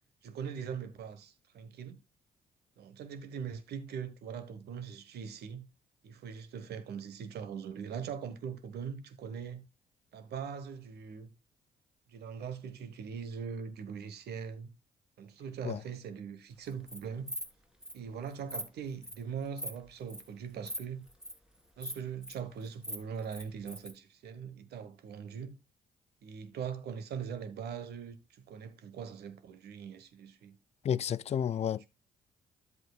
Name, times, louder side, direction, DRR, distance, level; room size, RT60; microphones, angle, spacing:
voice 1, 0.2-2.0 2.8-5.7 6.0-9.6 10.1-11.3 12.1-14.7 15.2-17.3 17.9-21.1 21.8-25.6 26.2-30.6 31.6-31.7, right 7 dB, 65° right, 1.1 m, -41 dB
Insect, 16.7-17.0 17.3-17.5 17.8-17.9 18.3-18.6 19.0-19.2 19.6-19.8 20.1-20.3 20.6-20.8 21.1-21.3 21.8-22.3 22.7-23.9, equal, 5° right, 2.1 m, -40 dB
voice 2, 30.8-31.9, left 9 dB, 35° left, 0.4 m, -31 dB
11.0 x 7.8 x 2.3 m
hypercardioid pair, 45°, 18 cm